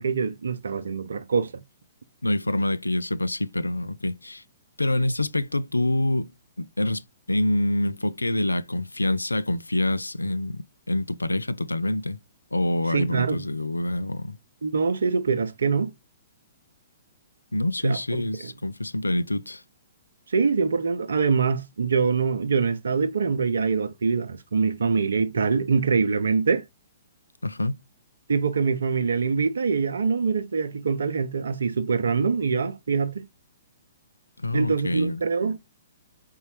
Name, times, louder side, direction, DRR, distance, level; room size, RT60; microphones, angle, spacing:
voice 1, 0.0-1.5 12.9-13.4 14.6-15.9 17.8-18.5 20.3-26.6 28.3-33.2 34.5-35.6, right 5 dB, 65° right, 0.6 m, -24 dB
voice 2, 2.2-4.4 4.8-6.3 6.6-12.2 12.5-14.4 17.5-19.6 27.4-27.8 34.4-35.2, left 1 dB, 85° left, 0.3 m, -26 dB
4.1 x 3.7 x 3.0 m
figure-of-eight pair, 120°, 0 cm